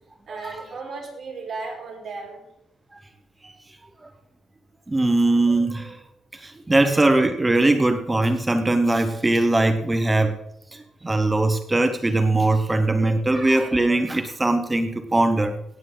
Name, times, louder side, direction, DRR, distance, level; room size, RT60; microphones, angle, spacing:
voice 1, 0.3-2.5, right 4 dB, 45° right, 0 dB, 5.0 m, -35 dB
voice 2, 4.9-6.0 6.3-10.4 10.7-15.6, right 2 dB, 15° right, 9 dB, 1.1 m, -21 dB
17.5 x 9.4 x 4.0 m, 0.78 s
cardioid pair, 90°, 0 cm